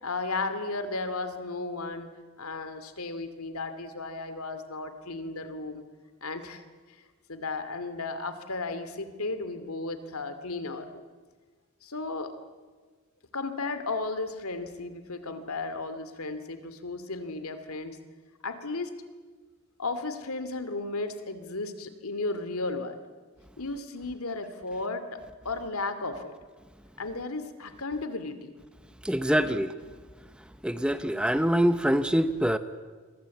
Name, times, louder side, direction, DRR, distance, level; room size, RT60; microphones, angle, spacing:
voice 1, 0.0-2.1 2.4-5.8 6.2-6.6 7.3-11.0 11.8-12.3 13.3-18.0 18.4-18.9 19.8-23.0 23.6-26.3 27.0-28.5 29.2-29.6, left 3 dB, 85° left, 10 dB, 2.6 m, -34 dB
voice 2, 29.0-29.7 30.6-32.6, equal, 5° right, 11 dB, 0.8 m, -24 dB
29.0 x 23.0 x 8.4 m, 1.4 s
head